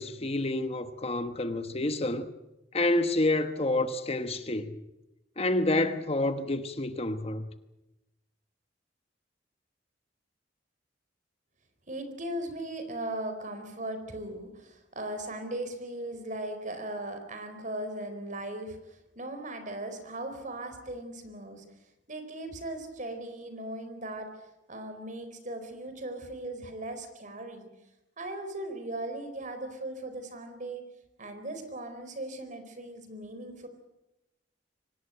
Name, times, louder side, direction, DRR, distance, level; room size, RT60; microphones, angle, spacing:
voice 1, 0.0-2.3 2.7-4.8 5.4-7.5, left 2 dB, 35° left, 1.2 m, -28 dB
voice 2, 11.9-21.7 22.1-24.3 24.7-27.7 28.2-30.8 31.2-33.7, right 1 dB, 45° right, 4.1 m, -38 dB
24.5 x 18.5 x 9.0 m
head